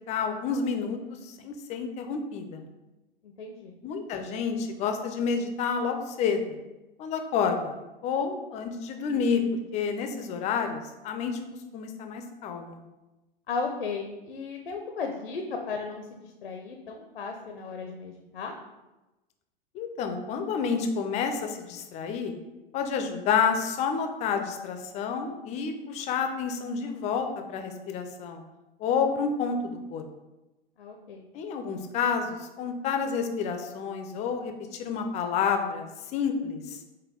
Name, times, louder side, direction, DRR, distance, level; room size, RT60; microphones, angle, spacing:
voice 1, 0.1-2.7 3.8-6.6 7.0-7.8 8.0-11.4 11.7-12.8 19.7-22.3 22.7-28.4 28.8-30.0 31.3-35.9 36.1-36.8, left 6 dB, 25° left, 5 dB, 0.4 m, -29 dB
voice 2, 3.2-3.7 13.5-16.0 16.4-18.5 30.8-31.3, left 4 dB, 75° left, 3 dB, 0.6 m, -35 dB
5.1 x 2.2 x 3.6 m, 1.1 s
figure-of-eight pair, 90°, 29 cm